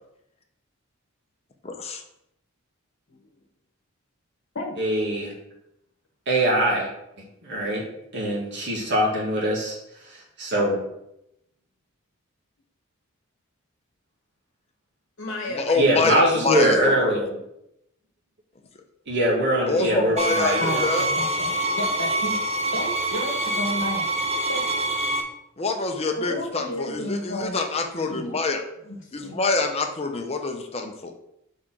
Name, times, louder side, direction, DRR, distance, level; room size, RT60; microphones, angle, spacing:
voice 1, 1.6-2.0 15.5-17.1 19.7-21.1 25.6-28.6 29.1-31.1, left 3 dB, 30° left, 4 dB, 0.8 m, -26 dB
voice 2, 4.8-5.3 6.3-6.9 7.4-7.8 8.1-9.7 10.4-10.8 15.7-17.3 19.1-20.8, right 1 dB, 55° right, -3 dB, 1.8 m, -22 dB
voice 3, 15.2-16.0 20.6-22.4 22.7-24.1 24.5-24.7 26.2-27.6 28.1-28.4 28.9-29.4, left 2 dB, 60° left, 0 dB, 1.2 m, -32 dB
sound 1, 20.2-25.2, right 2 dB, 30° right, 0.8 m, -25 dB
5.0 x 4.2 x 6.0 m, 0.80 s
head